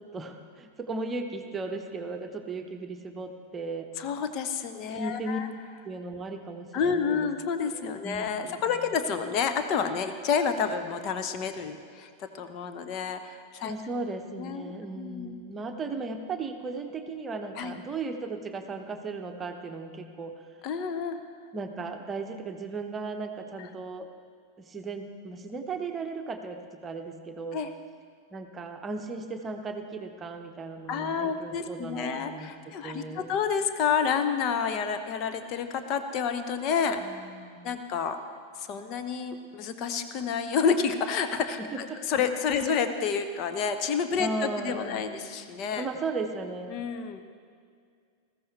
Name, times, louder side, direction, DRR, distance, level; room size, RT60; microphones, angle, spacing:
voice 1, 0.0-3.9 4.9-5.4 5.8-7.3 7.7-8.9 13.6-20.6 21.5-24.1 24.6-27.6 28.3-33.3 37.0-37.8 41.7-42.0 42.6-42.8 44.2-45.3 45.8-46.8, right 3 dB, 20° right, 5 dB, 1.1 m, -36 dB
voice 2, 4.0-5.5 6.7-13.7 14.4-15.4 17.6-17.7 20.6-21.2 23.6-23.7 27.5-27.7 30.9-37.0 37.6-38.2 38.6-41.6 42.1-45.9 46.7-47.2, left 6 dB, 40° left, 7 dB, 1.0 m, -29 dB
20.0 x 14.5 x 3.3 m, 2.1 s
figure-of-eight pair, 90°, 0 cm